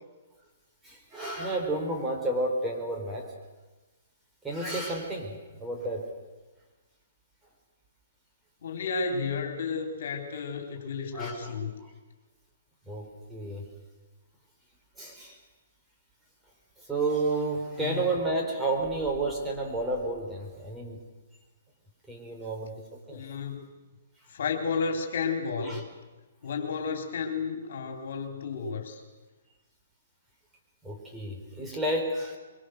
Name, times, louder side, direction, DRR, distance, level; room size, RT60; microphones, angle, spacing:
voice 1, 0.8-3.3 4.4-5.3 5.6-6.1 11.1-11.9 12.9-13.7 15.0-15.4 16.9-21.0 22.1-22.8 23.1-23.2 25.6-25.8 30.8-32.4, right 2 dB, 10° right, 0 dB, 4.6 m, -31 dB
voice 2, 8.6-11.7 17.8-18.2 23.1-23.7 24.3-25.8 26.4-29.0, left 5 dB, 60° left, 4 dB, 3.7 m, -32 dB
23.5 x 23.5 x 6.6 m, 1.2 s
hypercardioid pair, 130°, 0 cm